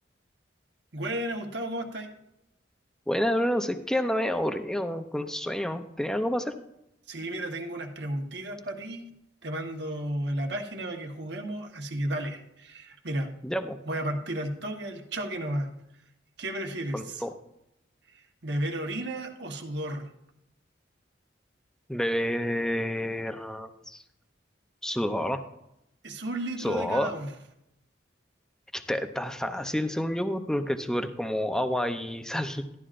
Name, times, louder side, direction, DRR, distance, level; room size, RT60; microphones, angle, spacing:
voice 1, 0.9-2.1 7.1-9.1 9.4-13.3 13.9-15.7 16.4-17.2 18.1-20.1 26.0-27.3, right 1 dB, 65° right, 3 dB, 1.2 m, -33 dB
voice 2, 3.1-6.5 13.4-13.8 16.9-17.3 21.9-24.0 24.8-25.4 26.6-27.1 28.7-32.6, equal, 5° left, 8 dB, 0.5 m, -29 dB
13.0 x 11.0 x 2.5 m, 0.84 s
head